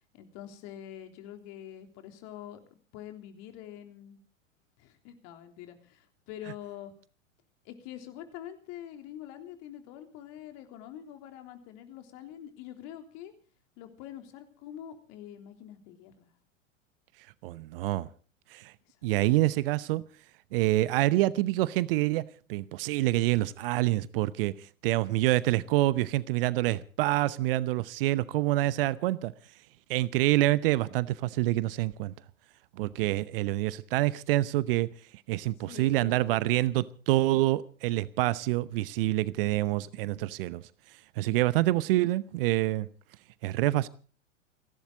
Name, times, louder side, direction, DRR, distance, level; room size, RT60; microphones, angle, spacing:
voice 1, 0.1-2.6 2.9-4.2 4.8-6.9 7.6-13.3 13.8-16.3 18.9-19.0 35.7-36.7, left 11 dB, 45° left, 3.4 m, -45 dB
voice 2, 17.4-18.1 18.5-18.7 19.0-20.0 20.5-24.5 24.8-29.3 29.9-32.1 32.8-34.9 35.3-40.6 41.2-42.9 43.4-43.9, right 17 dB, 45° right, 0.9 m, -26 dB
29.5 x 11.5 x 3.9 m
figure-of-eight pair, 95°, 38 cm